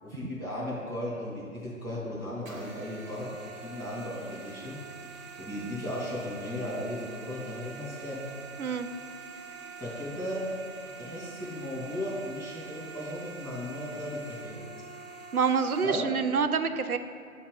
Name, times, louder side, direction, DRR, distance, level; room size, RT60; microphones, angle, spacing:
voice 1, 0.0-4.8 5.4-8.2 9.7-10.4 11.0-14.6 15.8-16.2, left 1 dB, 10° right, -12 dB, 0.7 m, -36 dB
sound 1, 2.5-15.8, right 5 dB, 65° right, 0.9 m, -45 dB
voice 2, 15.3-17.0, right 6 dB, 90° right, 9 dB, 0.5 m, -26 dB
7.7 x 2.9 x 5.3 m, 2.4 s
figure-of-eight pair, 150°, 43 cm